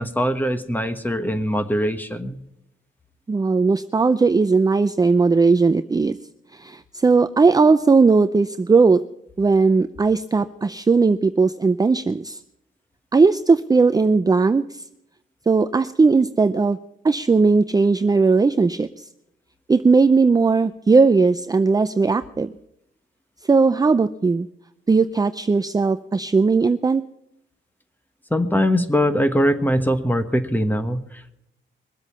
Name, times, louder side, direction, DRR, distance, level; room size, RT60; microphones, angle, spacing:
voice 1, 0.0-2.4 28.3-31.3, equal, 10° left, 9 dB, 1.3 m, -22 dB
voice 2, 3.3-6.2 6.5-9.0 9.4-12.4 13.1-14.8 15.5-16.8 17.0-19.1 19.7-22.5 23.5-24.5 24.9-27.0, right 4 dB, 20° right, 11 dB, 0.5 m, -18 dB
22.0 x 7.9 x 5.5 m, 0.81 s
wide cardioid pair, 130°, 20 cm